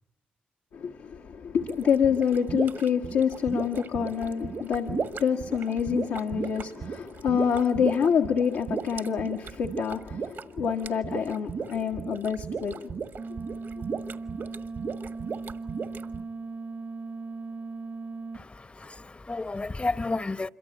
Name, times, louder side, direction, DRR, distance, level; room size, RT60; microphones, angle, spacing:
voice 1, 0.7-13.0, left 7 dB, 80° left, 1.5 m, -27 dB
sound 1, 1.6-16.2, right 5 dB, 65° right, 1.6 m, -35 dB
sound 2, 13.2-18.4, right 3 dB, 50° right, 1.1 m, -38 dB
voice 2, 18.3-20.5, left 3 dB, 30° left, 1.0 m, -32 dB
27.0 x 23.5 x 8.5 m
supercardioid pair, 50°, 4 cm